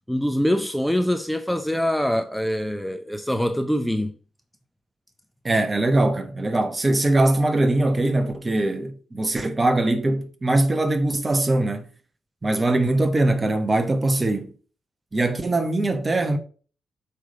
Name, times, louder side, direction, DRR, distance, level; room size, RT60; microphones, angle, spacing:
voice 1, 0.1-4.2 12.5-12.6, equal, 5° left, 0.6 m, -24 dB
voice 2, 5.4-11.9 12.4-14.5 15.1-16.4, right 2 dB, 25° right, 1.1 m, -22 dB
8.0 x 3.3 x 5.2 m
cardioid pair, 80°, 0 cm